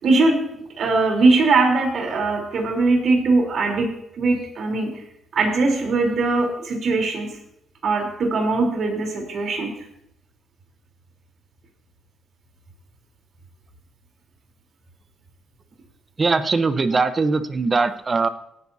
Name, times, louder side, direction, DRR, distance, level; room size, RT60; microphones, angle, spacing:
voice 1, 0.0-0.4 0.8-3.9 4.2-4.9 5.3-7.4 7.8-9.7, right 3 dB, 60° right, 1 dB, 3.6 m, -20 dB
voice 2, 16.2-18.3, right 4 dB, 30° right, 10 dB, 0.9 m, -21 dB
18.0 x 10.5 x 2.8 m, 0.77 s
cardioid pair, 90°, 0 cm